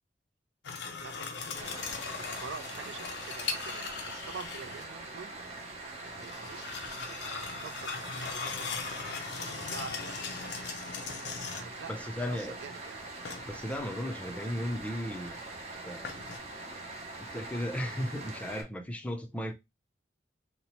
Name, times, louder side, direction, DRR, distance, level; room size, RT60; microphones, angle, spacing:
sound 1, 0.6-4.9 6.1-11.9 13.2-13.8 16.0-16.4, left 5 dB, 65° left, 0.5 m, -39 dB
voice 1, 1.0-5.3 6.0-6.7 7.0-9.1 9.4-10.5 11.5-13.1, right 5 dB, 80° right, 0.4 m, -47 dB
sound 2, 1.5-18.6, right 2 dB, 35° right, 0.6 m, -43 dB
voice 2, 11.9-12.6 13.5-15.4 15.8-16.1 17.2-19.5, equal, 10° left, 0.4 m, -35 dB
2.9 x 2.0 x 2.8 m
head